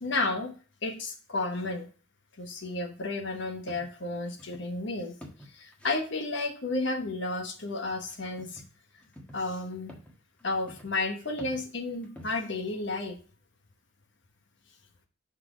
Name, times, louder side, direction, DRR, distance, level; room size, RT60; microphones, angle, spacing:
voice 1, 0.0-0.5 0.8-1.9 2.4-5.1 5.5-8.6 9.3-9.9 10.4-13.2, left 2 dB, 65° left, 5 dB, 1.2 m, -32 dB
sound 1, 3.5-4.7 5.0-6.1 8.0-8.7 9.0-12.6, equal, 5° left, 1.4 m, -49 dB
6.1 x 4.5 x 5.0 m, 0.37 s
head